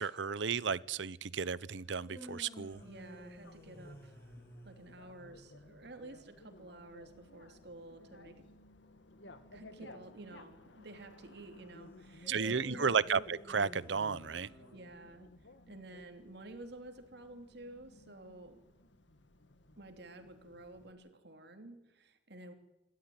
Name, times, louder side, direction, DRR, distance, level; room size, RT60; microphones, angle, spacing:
voice 1, 0.0-2.8 12.3-14.5, right 5 dB, 85° right, 20 dB, 0.8 m, -33 dB
sound 1, 1.8-5.1 12.2-15.2, left 1 dB, 15° left, 7.4 m, -52 dB
Bicycle, 2.7-20.9, left 1 dB, 80° left, 2.0 m, -58 dB
voice 2, 2.8-8.5 9.5-12.9 14.7-15.3 15.7-18.6 19.8-22.5, right 2 dB, 65° right, 7 dB, 3.0 m, -51 dB
27.0 x 13.0 x 9.5 m, 0.93 s
head